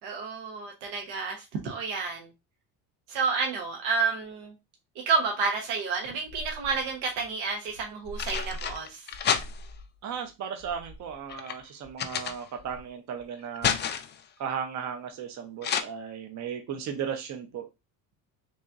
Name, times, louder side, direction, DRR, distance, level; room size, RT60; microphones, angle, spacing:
voice 1, 0.0-1.4 1.6-2.3 3.1-4.5 5.1-9.0, right 4 dB, 80° right, 1.1 m, -30 dB
sound 1, 6.1-6.9 7.8-9.9 10.6-12.8 13.2-14.3 15.6-15.8, left 7 dB, 30° left, 0.3 m, -31 dB
voice 2, 10.0-13.8 14.4-17.7, right 7 dB, 45° right, 0.7 m, -36 dB
4.0 x 3.0 x 2.4 m
cardioid pair, 120°, 40 cm